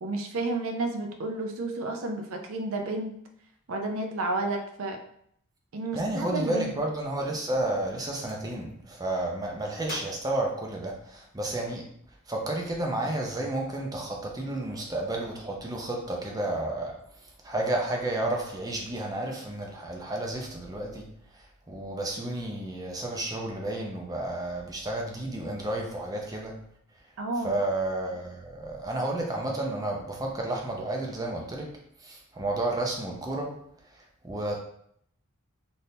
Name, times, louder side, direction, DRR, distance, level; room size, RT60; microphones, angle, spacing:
voice 1, 0.0-3.1 3.7-5.0 5.7-6.7 27.2-27.6, right 2 dB, 70° right, 4 dB, 0.5 m, -31 dB
voice 2, 5.9-11.9 12.3-17.0 17.4-21.1 21.3-26.6 27.4-33.6 34.2-34.6, right 1 dB, 15° right, 0 dB, 0.5 m, -31 dB
Gunshot gunfire, 7.9-8.4 9.8-11.3, left 2 dB, 45° left, 0.5 m, -46 dB
3.5 x 2.6 x 2.7 m, 0.68 s
head